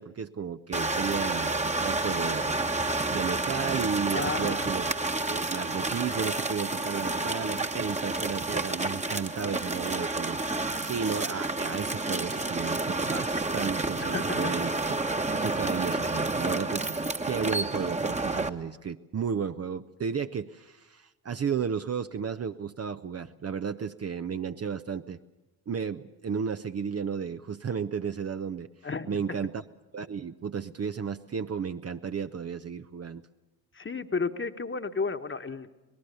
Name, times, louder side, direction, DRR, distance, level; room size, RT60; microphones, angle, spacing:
voice 1, 0.0-4.9 5.3-10.4 10.8-14.7 15.3-25.2 25.7-28.7 29.1-29.6 29.9-33.2, right 6 dB, 30° right, 9 dB, 0.8 m, -33 dB
sound 1, 0.7-18.5, right 2 dB, 15° right, 1.3 m, -30 dB
voice 2, 4.1-4.7 14.0-14.5 28.8-29.4 33.7-35.7, left 4 dB, 25° left, 9 dB, 1.5 m, -33 dB
25.5 x 19.5 x 6.9 m, 1.1 s
figure-of-eight pair, 40°, 48 cm